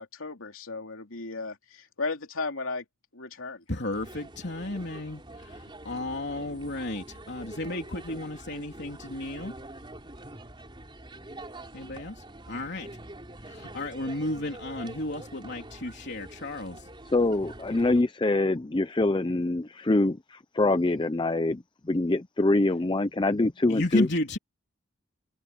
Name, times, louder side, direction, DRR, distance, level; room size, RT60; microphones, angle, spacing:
voice 1, 0.0-2.8 3.1-3.6, left 3 dB, 80° left, 3.0 m, -35 dB
voice 2, 3.7-9.5 11.7-12.9 13.4-16.9 23.7-24.4, left 1 dB, 55° left, 3.6 m, -33 dB
sound 1, 3.9-18.0, right 1 dB, 25° right, 4.2 m, -45 dB
voice 3, 17.0-24.1, left 2 dB, 25° left, 0.6 m, -25 dB
head